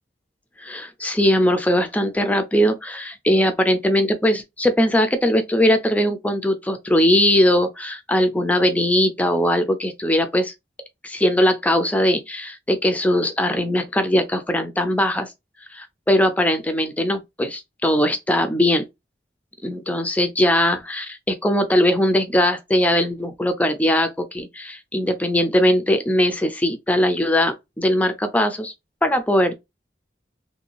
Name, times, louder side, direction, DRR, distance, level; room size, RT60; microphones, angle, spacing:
voice 1, 0.6-10.5 11.0-15.3 15.7-18.9 19.6-28.7 29.0-29.5, left 1 dB, 10° left, 0.4 m, -20 dB
3.2 x 2.6 x 2.9 m
head